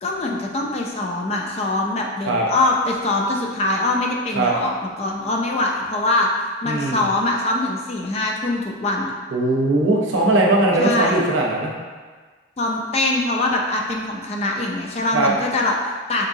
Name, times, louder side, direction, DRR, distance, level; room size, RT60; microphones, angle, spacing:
voice 1, 0.0-4.7 5.0-9.1 10.8-11.2 12.6-16.3, left 2 dB, 30° left, 0 dB, 0.4 m, -23 dB
voice 2, 6.6-7.0 9.3-11.7 15.1-15.3, right 2 dB, 75° right, -1 dB, 0.6 m, -19 dB
3.9 x 3.6 x 2.6 m, 1.5 s
head